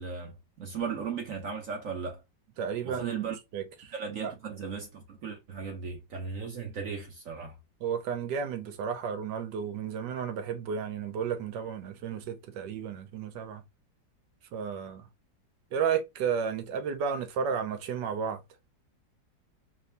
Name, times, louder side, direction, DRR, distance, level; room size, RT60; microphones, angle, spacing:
voice 1, 0.0-2.2 2.8-3.3 3.9-7.6, right 6 dB, 55° right, 1.0 m, -36 dB
voice 2, 2.6-4.3 7.8-13.6 14.5-15.1 15.7-18.4, right 7 dB, 75° right, 1.4 m, -33 dB
4.1 x 2.6 x 3.2 m
omnidirectional pair, 1.9 m